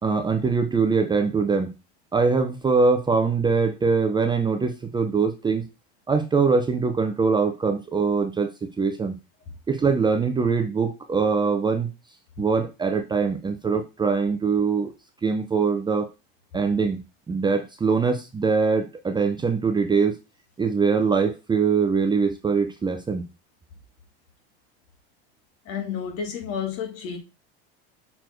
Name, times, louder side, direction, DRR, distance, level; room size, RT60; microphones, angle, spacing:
voice 1, 0.0-1.7 2.1-5.6 6.1-9.2 9.7-11.9 12.4-14.9 15.2-16.1 16.5-20.2 20.6-23.3, right 5 dB, 15° right, 0.7 m, -23 dB
voice 2, 25.6-27.2, left 7 dB, 50° left, 3.0 m, -31 dB
6.6 x 4.3 x 4.5 m
supercardioid pair, 125°, 30 cm